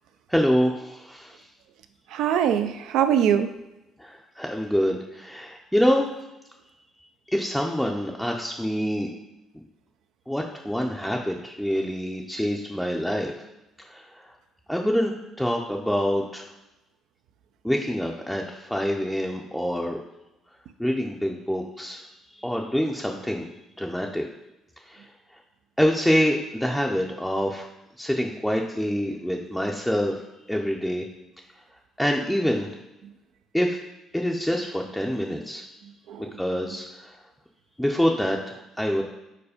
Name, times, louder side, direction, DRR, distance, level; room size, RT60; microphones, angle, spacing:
voice 1, 0.3-1.5 4.0-6.1 7.3-9.1 10.3-13.5 13.8-14.3 14.7-16.5 17.6-20.0 20.8-22.1 22.4-23.5 23.8-24.3 24.9-25.1 25.8-27.7 28.0-30.2 30.5-31.0 32.0-32.7 33.5-33.8 34.1-35.6 36.4-37.2 37.8-39.0, equal, ahead, 0 dB, 0.5 m, -26 dB
voice 2, 2.1-3.5 35.8-36.7, right 9 dB, 80° right, 9 dB, 0.5 m, -24 dB
4.8 x 4.5 x 5.0 m, 0.94 s
cardioid pair, 105°, 0 cm